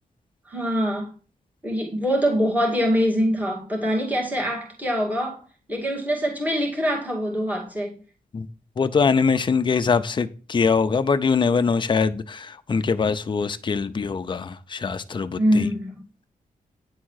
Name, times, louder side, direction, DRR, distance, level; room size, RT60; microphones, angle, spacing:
voice 1, 0.5-1.1 1.6-5.4 5.7-8.0 15.4-15.9, equal, 10° right, 2.0 m, -24 dB
voice 2, 8.8-15.7, left 5 dB, 35° left, 0.5 m, -23 dB
9.5 x 3.7 x 6.3 m
wide cardioid pair, 155°, 14 cm